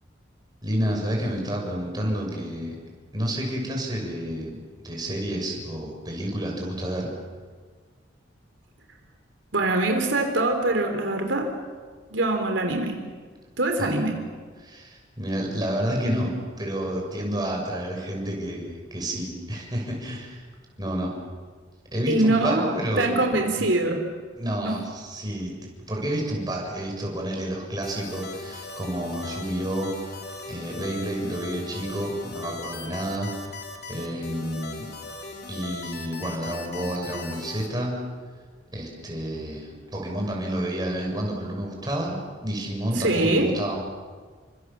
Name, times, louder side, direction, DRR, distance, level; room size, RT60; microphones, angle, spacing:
voice 1, 0.6-2.8 3.1-7.1 13.8-13.9 14.6-20.4 20.8-21.1 21.9-23.2 23.6-23.7 24.3-25.5 25.9-29.9 30.5-33.6 33.9-34.9 35.5-38.0 38.7-43.8, right 1 dB, 20° right, 0 dB, 6.6 m, -30 dB
voice 2, 9.5-11.5 12.1-13.0 13.6-14.1 22.1-24.0 24.6-24.7 43.0-43.5, right 2 dB, 75° right, 4 dB, 3.3 m, -23 dB
sound 1, 27.8-37.7, left 3 dB, 55° left, 4.0 m, -39 dB
29.5 x 25.5 x 7.3 m, 1.5 s
head